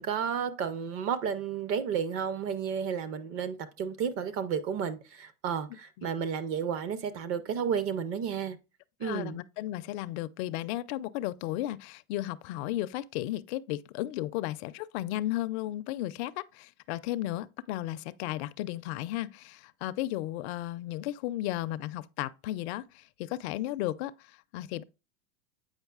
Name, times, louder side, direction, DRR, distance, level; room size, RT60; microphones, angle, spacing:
voice 1, 0.0-8.6 9.0-9.4, right 7 dB, 35° right, 0.6 m, -32 dB
voice 2, 5.7-6.1 9.0-24.8, left 15 dB, 50° left, 0.5 m, -34 dB
8.0 x 5.1 x 2.4 m
supercardioid pair, 130°, 43 cm